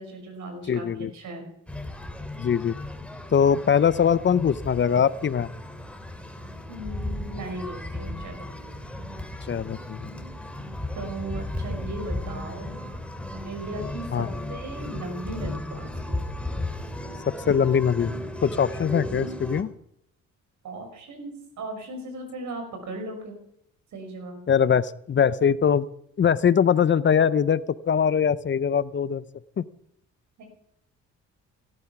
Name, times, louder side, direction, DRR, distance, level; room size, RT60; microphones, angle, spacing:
voice 1, 0.0-0.9 1.1-1.5 6.7-8.5 10.9-12.7 13.4-16.2 20.6-23.4 23.9-24.4 30.4-30.5, right 2 dB, 75° right, 5 dB, 6.0 m, -37 dB
voice 2, 0.7-1.1 2.4-2.7 3.3-5.5 9.5-10.1 14.1-14.3 17.5-18.1 18.4-19.7 24.5-25.9 26.2-27.6 27.9-29.2 29.6-29.7, left 7 dB, 40° left, 17 dB, 0.7 m, -22 dB
sound 1, 1.7-19.6, left 1 dB, 5° left, 2.7 m, -35 dB
18.0 x 12.0 x 6.0 m, 0.74 s
cardioid pair, 90°, 30 cm